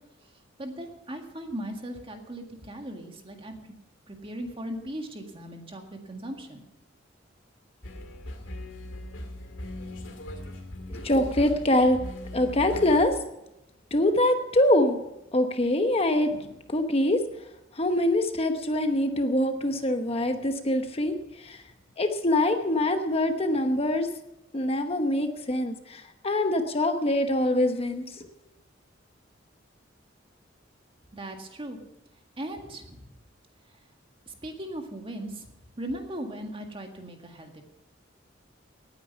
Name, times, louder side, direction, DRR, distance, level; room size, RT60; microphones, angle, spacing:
voice 1, 0.6-3.6 4.1-6.6 31.1-31.8 32.4-33.1 34.3-35.5 35.8-37.6, right 1 dB, 30° right, 4 dB, 1.9 m, -38 dB
sound 1, 7.8-13.0, left 1 dB, 80° left, 2.2 m, -39 dB
voice 2, 10.9-12.0 12.3-13.1 13.9-15.0 15.3-17.2 17.7-21.6 22.0-24.1 24.5-28.2, left 1 dB, 30° left, 7 dB, 1.0 m, -24 dB
18.5 x 9.4 x 5.6 m, 0.89 s
head